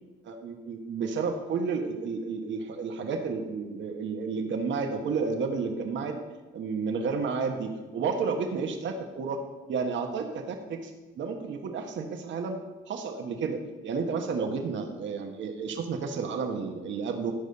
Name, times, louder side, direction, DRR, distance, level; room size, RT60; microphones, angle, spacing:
voice 1, 0.2-6.2 6.5-9.4 9.7-12.6 12.9-17.3, right 5 dB, 70° right, 4 dB, 1.5 m, -31 dB
12.0 x 5.2 x 6.6 m, 1.2 s
cardioid pair, 90°, 20 cm